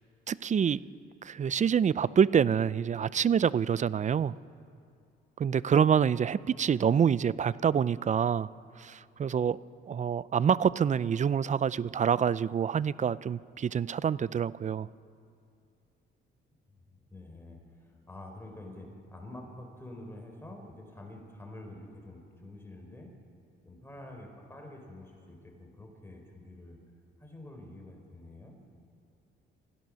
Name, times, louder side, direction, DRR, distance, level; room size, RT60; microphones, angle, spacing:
voice 1, 0.3-0.8 1.2-4.3 5.4-8.5 8.8-9.6 9.9-14.9, right 7 dB, 35° right, 19 dB, 0.5 m, -26 dB
voice 2, 16.9-23.1 23.6-26.8 27.2-28.6, left 1 dB, 10° left, 1 dB, 4.3 m, -47 dB
27.5 x 16.0 x 6.4 m, 2.4 s
cardioid pair, 90°, 20 cm